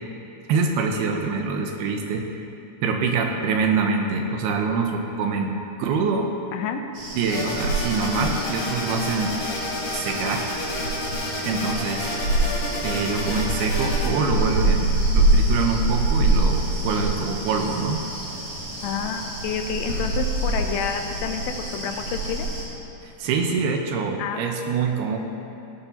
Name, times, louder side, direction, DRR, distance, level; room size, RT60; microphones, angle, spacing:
voice 1, 0.5-2.4 2.8-6.3 7.2-9.3 9.9-10.5 11.5-12.1 12.8-18.0 23.0-25.2, right 4 dB, 80° right, 3 dB, 2.6 m, -25 dB
voice 2, 6.5-6.8 18.8-21.4 21.7-22.5 24.2-24.4, left 7 dB, 90° left, 5 dB, 2.9 m, -29 dB
sound 1, 7.0-22.6, right 2 dB, 55° right, 4.6 m, -25 dB
sound 2, 7.3-14.1, left 2 dB, 55° left, 3.9 m, -30 dB
17.0 x 11.5 x 2.8 m, 2.8 s
omnidirectional pair, 4.8 m